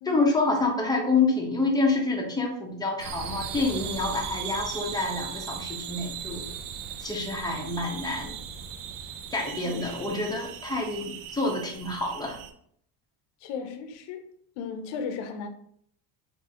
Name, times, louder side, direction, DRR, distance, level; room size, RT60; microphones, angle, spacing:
voice 1, 0.0-6.4 7.0-8.4 9.3-12.4, left 3 dB, 10° left, 0.7 m, -27 dB
sound 1, 3.0-12.5, right 8 dB, 50° right, 0.5 m, -38 dB
voice 2, 9.6-10.1 13.4-14.3 14.6-15.5, left 5 dB, 75° left, 0.7 m, -36 dB
3.5 x 2.7 x 2.7 m
cardioid pair, 110°, 44 cm